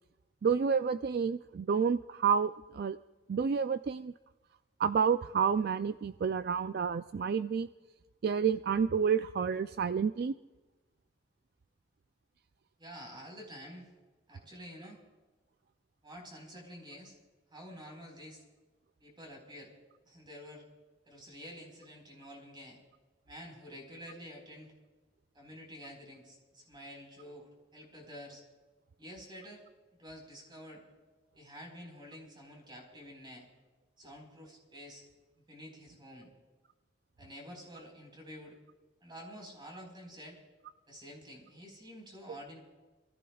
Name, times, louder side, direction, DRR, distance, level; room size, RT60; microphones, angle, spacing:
voice 1, 0.4-3.0 3.3-4.1 4.8-7.7 8.2-10.4, right 6 dB, 55° right, 11 dB, 0.3 m, -29 dB
voice 2, 12.8-13.9 14.3-15.0 16.0-17.1 17.5-18.4 19.0-19.7 20.1-20.6 21.0-22.8 23.2-24.7 25.3-28.4 29.0-29.6 30.0-30.8 31.3-33.5 34.0-35.0 35.4-36.3 37.2-38.6 39.0-40.4 40.9-42.6, equal, 25° right, 0 dB, 4.4 m, -49 dB
27.0 x 15.0 x 2.3 m, 1.2 s
head